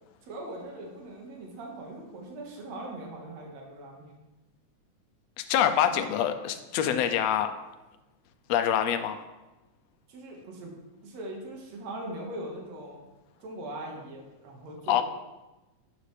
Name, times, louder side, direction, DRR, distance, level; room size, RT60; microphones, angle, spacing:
voice 1, 0.2-4.1 10.1-10.7 11.0-13.0 13.4-15.0, right 1 dB, 65° right, 0 dB, 2.8 m, -40 dB
voice 2, 5.4-7.5 8.5-9.2 14.9-15.0, left 9 dB, 80° left, 8 dB, 1.6 m, -25 dB
11.5 x 8.3 x 3.3 m, 1.1 s
omnidirectional pair, 3.5 m